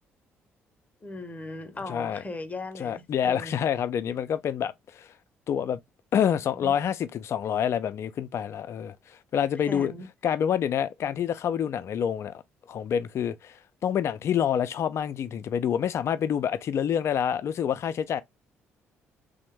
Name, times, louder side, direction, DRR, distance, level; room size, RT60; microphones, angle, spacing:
voice 1, 1.0-3.5 6.5-6.7 9.5-10.1, left 2 dB, 25° left, 0.7 m, -38 dB
voice 2, 1.9-2.2 2.8-4.7 5.0-5.1 5.5-5.8 6.1-8.9 9.3-9.9 10.2-12.4 12.7-13.6 13.8-18.2, left 8 dB, 45° left, 0.3 m, -27 dB
3.3 x 2.0 x 2.9 m
figure-of-eight pair, 45°, 6 cm